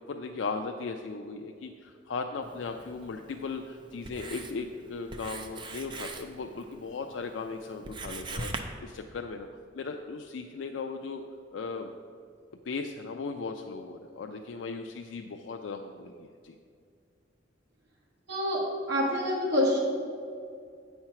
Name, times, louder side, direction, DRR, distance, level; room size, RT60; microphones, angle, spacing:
voice 1, 0.1-9.5 9.7-11.2 11.5-11.9 12.6-16.5, left 4 dB, 80° left, 4 dB, 0.4 m, -37 dB
Writing, 2.4-8.6, right 3 dB, 25° right, 0.5 m, -42 dB
voice 2, 18.3-19.8, left 1 dB, 65° right, -4 dB, 1.5 m, -27 dB
8.7 x 4.4 x 5.7 m, 2.3 s
head